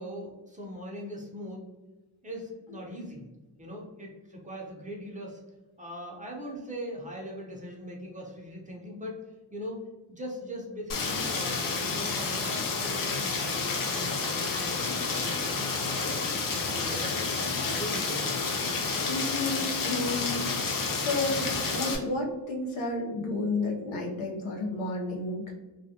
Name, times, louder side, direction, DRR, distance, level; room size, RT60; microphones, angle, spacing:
voice 1, 0.0-1.6 2.2-3.3 3.6-5.4 5.8-9.2 9.5-17.2 17.5-18.3, equal, 15° right, -2 dB, 0.6 m, -40 dB
Rain, 10.9-22.0, left 4 dB, 45° left, 0.6 m, -30 dB
voice 2, 19.1-20.5 21.0-25.5, left 2 dB, 85° left, -2 dB, 0.8 m, -31 dB
2.4 x 2.1 x 2.7 m, 1.1 s
cardioid pair, 95°, 46 cm